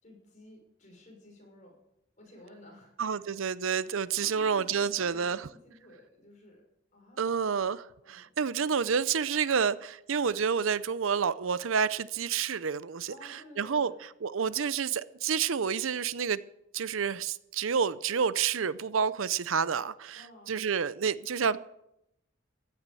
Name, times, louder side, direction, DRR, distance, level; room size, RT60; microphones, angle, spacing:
voice 1, 0.0-1.7 2.2-3.2 3.8-3.9 4.2-6.6 6.9-7.2 8.0-8.3 13.1-14.0 20.1-20.6, left 1 dB, 35° left, 6.0 m, -53 dB
voice 2, 3.0-5.5 7.2-13.9 14.2-16.4 16.7-21.6, right 6 dB, 80° right, 0.6 m, -29 dB
15.5 x 11.0 x 6.8 m
head